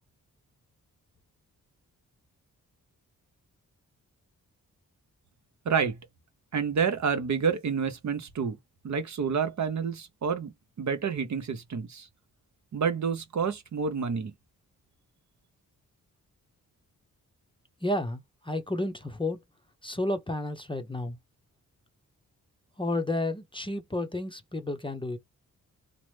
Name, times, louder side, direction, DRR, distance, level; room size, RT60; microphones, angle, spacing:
voice 1, 5.6-6.0 6.5-8.6 8.8-12.1 12.7-14.3, right 6 dB, 50° right, 0.7 m, -29 dB
voice 2, 17.8-19.4 19.8-21.2 22.8-25.2, left 1 dB, 15° left, 0.6 m, -31 dB
2.9 x 2.0 x 3.2 m
cardioid pair, 55°, 36 cm